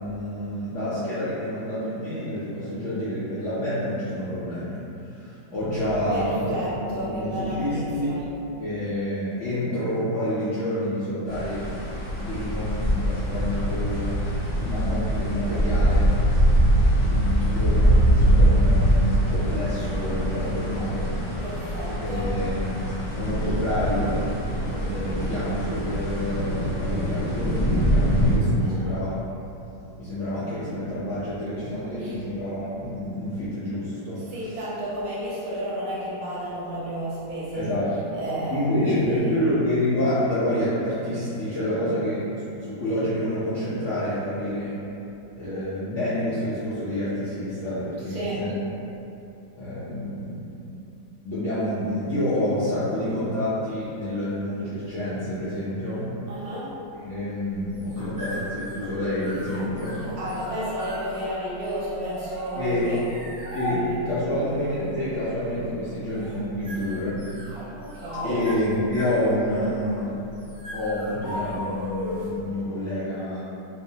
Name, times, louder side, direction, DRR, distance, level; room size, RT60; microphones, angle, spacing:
voice 1, 0.0-4.8 5.1-6.5 6.8-8.1 8.6-11.6 12.2-14.1 14.6-16.1 16.9-21.1 21.8-24.2 24.7-29.2 30.0-34.2 37.5-37.8 38.5-42.2 42.5-44.7 45.4-48.5 49.6-50.5 51.2-56.1 57.0-60.0 62.6-62.8 63.5-67.2 68.2-70.2 70.7-73.4, left 1 dB, 70° left, -13 dB, 0.7 m, -28 dB
voice 2, 6.1-8.3 21.4-22.3 28.6-29.0 32.0-32.2 34.3-37.7 38.1-39.5 48.1-48.4 56.3-56.8 60.2-63.0 63.7-64.0 67.8-68.4, equal, 65° right, -8 dB, 1.0 m, -32 dB
sound 1, 11.3-28.4, equal, 10° left, 0.7 m, -23 dB
sound 2, 57.5-72.4, equal, 30° right, 0.3 m, -37 dB
2.9 x 2.0 x 2.7 m, 2.8 s
omnidirectional pair, 1.9 m